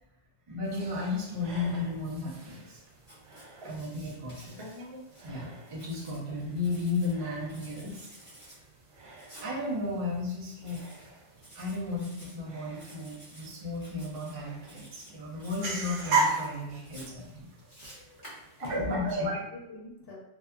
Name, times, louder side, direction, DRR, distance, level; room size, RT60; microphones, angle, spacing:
voice 1, 0.5-2.8 3.6-4.6 5.2-8.1 9.4-10.8 11.5-17.5 18.7-19.3, left 2 dB, 35° right, -5 dB, 0.6 m, -34 dB
sound 1, 0.6-18.8, right 3 dB, 90° right, 1.0 m, -39 dB
Writing, 3.0-5.3 5.7-7.1 7.5-8.6 9.2-9.5 10.6-11.1 11.4-12.3 12.7-13.5 13.7-14.3 14.6-15.1 15.4-16.5 16.8-19.1, right 1 dB, 20° left, 1.0 m, -52 dB
voice 2, 4.4-5.0 18.6-20.2, left 1 dB, 60° left, -5 dB, 1.1 m, -44 dB
2.7 x 2.3 x 2.3 m, 0.90 s
omnidirectional pair, 1.2 m